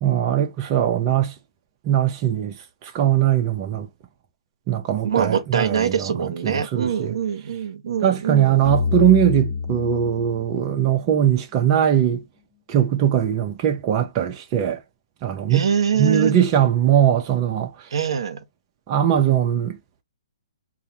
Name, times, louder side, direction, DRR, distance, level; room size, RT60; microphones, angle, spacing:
voice 1, 0.0-1.3 1.8-2.6 2.8-3.9 4.7-7.1 8.0-12.2 12.7-14.8 15.2-15.7 16.0-17.7 18.9-19.8, right 10 dB, 30° right, 0.5 m, -20 dB
voice 2, 5.0-8.6 15.5-16.5 17.9-18.4, right 7 dB, 70° right, 0.7 m, -24 dB
sound 1, 8.6-11.9, left 5 dB, 30° left, 0.9 m, -27 dB
4.6 x 2.1 x 2.7 m
hypercardioid pair, 140°, 3 cm